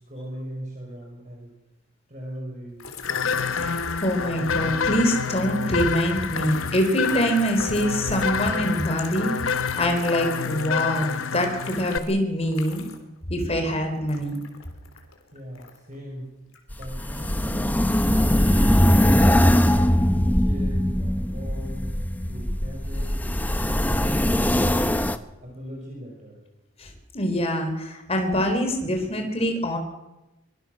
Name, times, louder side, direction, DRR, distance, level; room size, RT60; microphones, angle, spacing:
voice 1, 0.1-1.5 2.1-2.8 15.3-16.3 16.8-17.7 18.1-19.6 20.1-21.9 22.2-23.2 23.6-25.0 25.4-26.4, equal, 35° right, -1 dB, 5.7 m, -39 dB
sound 1, 2.8-13.2 13.4-16.0 16.5-17.3, left 5 dB, 85° left, 3.7 m, -42 dB
sound 2, 3.0-12.0, left 6 dB, 70° left, 0.9 m, -28 dB
voice 2, 3.5-9.3 9.8-12.8 13.3-14.4 26.8-29.8, equal, 30° left, 5 dB, 4.2 m, -24 dB
sound 3, 16.7-25.2, equal, 10° left, 0.8 m, -21 dB
24.0 x 23.0 x 6.6 m, 0.99 s
head